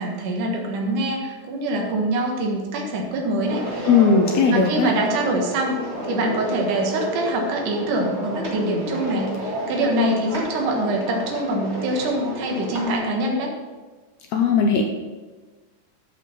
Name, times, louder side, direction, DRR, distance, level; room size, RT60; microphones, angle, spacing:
voice 1, 0.0-3.7 4.5-13.5, right 1 dB, 65° right, 0 dB, 3.0 m, -24 dB
sound 1, 3.4-12.9, right 1 dB, 25° right, 1.5 m, -31 dB
voice 2, 3.8-4.9 14.3-14.8, left 5 dB, 80° left, 2 dB, 1.5 m, -17 dB
14.0 x 5.5 x 5.5 m, 1.3 s
omnidirectional pair, 4.0 m